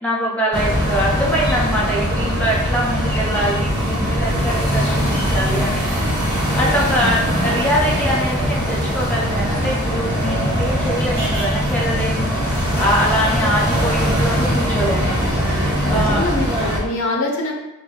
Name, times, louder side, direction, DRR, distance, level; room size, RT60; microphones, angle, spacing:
voice 1, 0.0-15.1 15.5-16.2, equal, 5° left, -5 dB, 0.8 m, -23 dB
sound 1, 0.5-16.8, equal, 20° right, 1.2 m, -21 dB
voice 2, 15.8-17.5, left 2 dB, 65° left, 1 dB, 0.8 m, -24 dB
4.9 x 2.2 x 3.8 m, 0.95 s
head